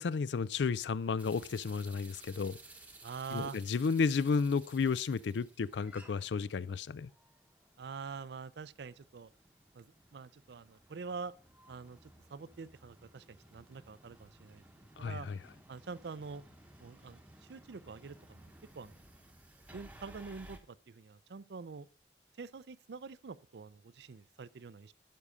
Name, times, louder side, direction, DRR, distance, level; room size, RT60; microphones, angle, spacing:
voice 1, 0.0-2.6 3.3-7.1 15.0-15.4, left 5 dB, 85° left, 0.4 m, -32 dB
sound 1, 1.2-20.6, right 2 dB, 10° right, 0.9 m, -58 dB
voice 2, 3.0-3.6 7.8-9.3 9.7-11.3 11.7-13.2 13.5-14.6 15.0-15.3 15.7-16.4 16.8-17.2 17.5-19.0 19.7-21.9 22.4-24.9, right 5 dB, 70° right, 0.5 m, -45 dB
12.0 x 5.5 x 5.0 m
head